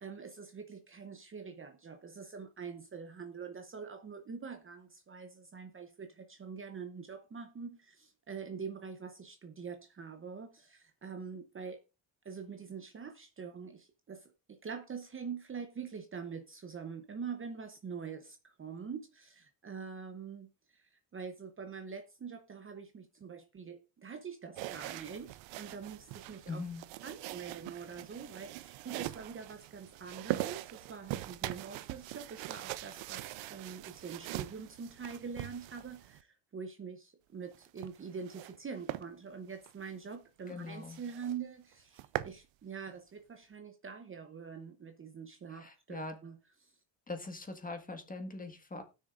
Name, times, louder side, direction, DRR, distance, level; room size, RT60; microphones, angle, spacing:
voice 1, 0.0-11.8 12.2-26.6 27.0-46.7, right 6 dB, 30° right, 0.8 m, -45 dB
sound 1, 24.6-36.2 37.5-38.6 38.9-39.1 39.5-39.7 40.1-40.2 40.5-40.6 40.9-41.4 41.7-42.4, right 16 dB, 80° right, 0.7 m, -42 dB
voice 2, 26.4-26.8 40.5-41.0 45.5-46.2 47.1-48.8, left 3 dB, 20° left, 1.7 m, -42 dB
18.5 x 6.5 x 2.5 m
cardioid pair, 100°, 44 cm